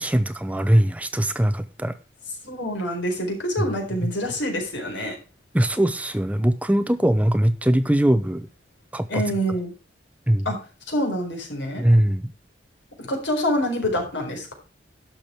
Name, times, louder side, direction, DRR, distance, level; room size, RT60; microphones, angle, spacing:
voice 1, 0.0-1.9 5.5-8.5 8.9-9.2 10.3-10.4 11.8-12.2, right 1 dB, 10° right, 12 dB, 0.5 m, -21 dB
voice 2, 2.4-5.2 9.1-9.7 10.4-10.6 10.9-11.8 13.0-14.5, equal, 90° left, 2 dB, 4.4 m, -26 dB
12.0 x 6.2 x 5.8 m, 0.34 s
head